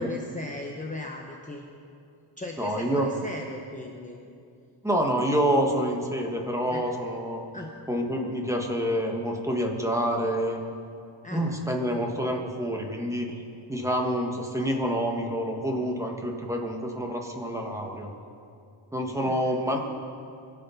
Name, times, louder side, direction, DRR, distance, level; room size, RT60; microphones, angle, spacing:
voice 1, 0.0-1.7 2.4-4.2 6.7-6.8 7.5-7.7 11.2-11.4 19.2-19.7, left 2 dB, 15° left, 1 dB, 0.8 m, -37 dB
voice 2, 2.6-3.1 4.8-7.4 7.9-10.6 11.3-13.4 13.7-18.1 18.9-19.8, equal, 5° right, 1 dB, 1.4 m, -27 dB
22.5 x 8.2 x 5.7 m, 2.5 s
wide cardioid pair, 150°, 49 cm